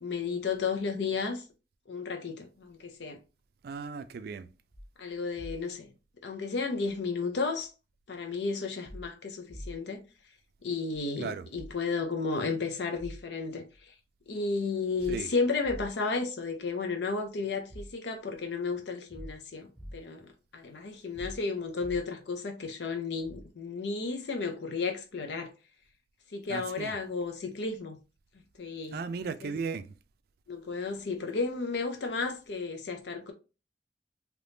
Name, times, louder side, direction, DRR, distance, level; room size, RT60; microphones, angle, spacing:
voice 1, 0.0-1.4 1.9-3.2 5.0-5.9 6.2-7.7 8.1-10.0 10.6-13.6 14.3-25.5 26.3-28.0 28.6-29.5 30.5-33.3, left 4 dB, 75° left, 0.6 m, -33 dB
voice 2, 3.6-4.5 11.2-11.4 15.1-15.3 26.5-26.9 28.9-29.9, right 5 dB, 60° right, 0.3 m, -36 dB
sound 1, 4.7-4.9 5.4-5.6 6.8-7.0 8.8-9.1 9.5-9.7 10.9-11.0 11.5-11.8 12.9-13.2 13.7-13.8 15.0-16.1 17.1-17.2 17.7-17.9 19.1-20.0 21.1-22.2 23.2-23.5, equal, 5° left, 0.7 m, -44 dB
3.4 x 2.9 x 2.6 m
head